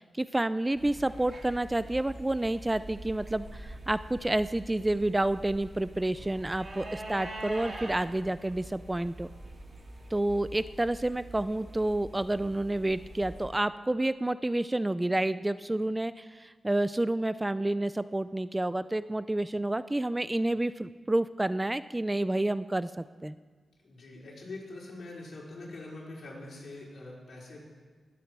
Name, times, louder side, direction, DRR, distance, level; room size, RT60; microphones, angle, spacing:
voice 1, 0.0-9.3 10.1-23.3, right 1 dB, 15° right, 14 dB, 0.4 m, -29 dB
sound 1, 0.7-13.4, right 1 dB, 45° right, 2.7 m, -44 dB
voice 2, 23.8-27.6, left 2 dB, 65° left, -4 dB, 4.6 m, -44 dB
20.0 x 8.4 x 6.1 m, 1.5 s
cardioid pair, 80°, 0 cm